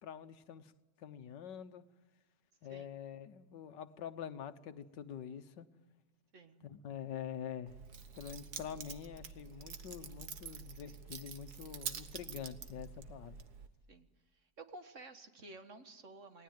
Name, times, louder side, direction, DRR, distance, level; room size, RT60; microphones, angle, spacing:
voice 1, 0.0-0.7 1.0-1.8 2.6-5.7 6.6-7.8 8.1-13.4, left 8 dB, 85° left, 11 dB, 1.7 m, -46 dB
voice 2, 6.3-6.6 13.9-14.1 14.3-16.4, right 2 dB, 45° right, 8 dB, 1.8 m, -53 dB
Keys jangling, 7.7-13.7, right 6 dB, 65° right, 1.8 m, -47 dB
29.0 x 19.0 x 9.4 m, 1.2 s
omnidirectional pair, 1.9 m